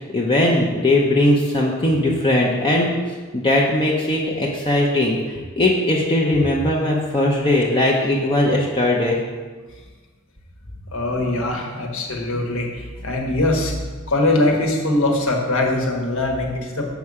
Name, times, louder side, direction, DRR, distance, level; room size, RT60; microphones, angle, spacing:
voice 1, 0.1-2.9 3.3-5.2 5.6-9.2, left 1 dB, 25° left, -3 dB, 0.7 m, -19 dB
voice 2, 10.9-12.7 13.0-13.7 14.1-16.9, left 2 dB, 70° left, 1 dB, 1.3 m, -21 dB
7.0 x 5.4 x 4.8 m, 1.4 s
head